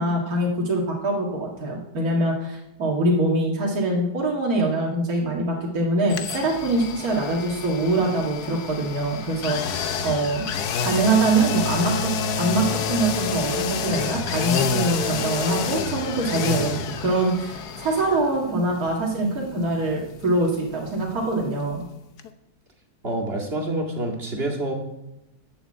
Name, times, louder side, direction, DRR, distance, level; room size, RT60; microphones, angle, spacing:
voice 1, 0.0-10.5 10.8-12.1 12.4-21.8, right 2 dB, 65° right, -2 dB, 2.4 m, -24 dB
sound 1, 6.1-21.9 22.2-22.3, left 6 dB, 80° left, 1.5 m, -29 dB
voice 2, 23.0-24.7, right 1 dB, 40° right, 1 dB, 2.5 m, -27 dB
11.0 x 7.1 x 7.8 m, 0.92 s
omnidirectional pair, 1.7 m